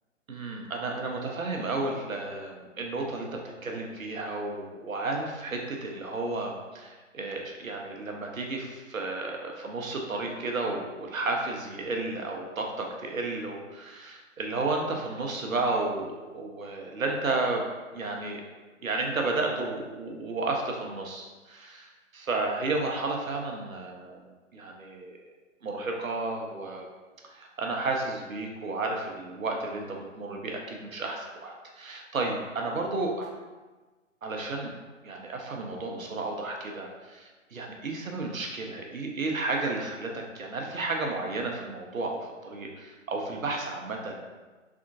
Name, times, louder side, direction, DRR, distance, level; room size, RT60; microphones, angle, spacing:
voice 1, 0.3-17.7 17.9-18.4 18.8-25.2 25.6-26.9 27.3-33.4 34.2-34.7 35.0-44.2, right 3 dB, 85° right, 1 dB, 0.8 m, -32 dB
3.5 x 2.4 x 2.5 m, 1.3 s
figure-of-eight pair, 145°, 39 cm